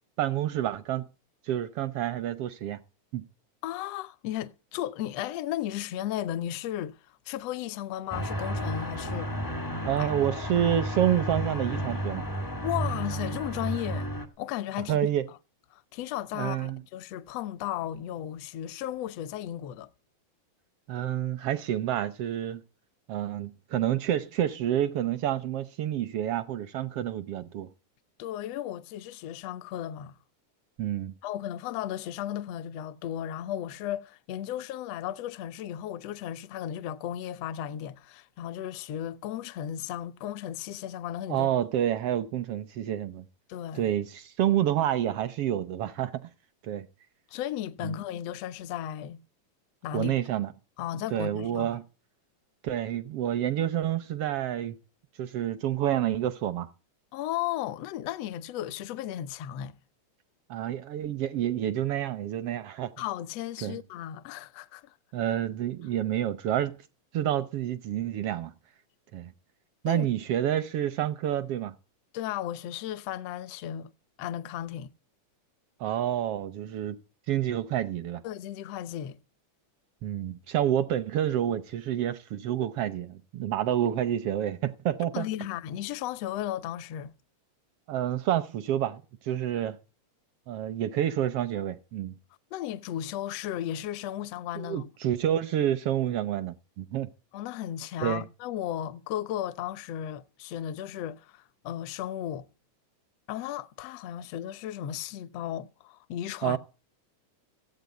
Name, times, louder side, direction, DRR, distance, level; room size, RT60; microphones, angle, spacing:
voice 1, 0.2-1.0 1.5-2.8 3.1-3.2 9.8-12.2 14.9-15.2 16.3-16.8 20.9-22.6 23.1-27.7 30.8-31.1 41.3-43.2 43.7-46.1 46.6-46.9 47.8-47.9 49.9-50.5 51.1-51.8 52.6-54.8 55.2-56.7 60.5-62.9 63.6-63.8 65.1-66.8 67.1-68.5 69.1-69.3 69.8-71.7 75.8-77.0 77.3-78.2 80.0-85.3 87.9-89.8 90.5-92.2 94.6-97.1 98.0-98.2 106.4-106.6, right 11 dB, 75° right, 1.3 m, -28 dB
voice 2, 3.6-7.0 7.3-9.3 10.0-10.1 12.6-14.1 14.4-15.4 15.7-19.9 28.2-30.2 31.2-41.5 43.5-43.9 47.3-49.2 49.8-50.1 50.8-51.8 57.1-59.8 63.0-64.9 69.8-70.1 72.1-73.9 74.2-74.9 78.2-79.2 83.8-83.9 85.1-87.1 92.5-94.9 97.3-102.5 103.3-106.6, left 11 dB, 70° left, 1.6 m, -35 dB
sound 1, 8.1-14.2, right 1 dB, 25° left, 0.4 m, -32 dB
16.0 x 8.3 x 8.2 m
omnidirectional pair, 3.7 m